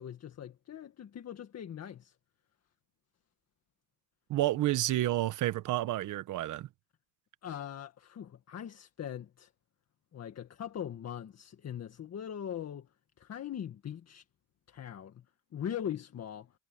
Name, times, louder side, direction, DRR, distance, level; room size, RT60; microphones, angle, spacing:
voice 1, 0.0-2.1 7.4-9.5 10.1-12.9 13.2-14.2 14.7-15.2 15.5-16.5, left 9 dB, 55° left, 1.9 m, -41 dB
voice 2, 4.3-6.7, right 15 dB, 80° right, 1.3 m, -30 dB
cardioid pair, 90°, 30 cm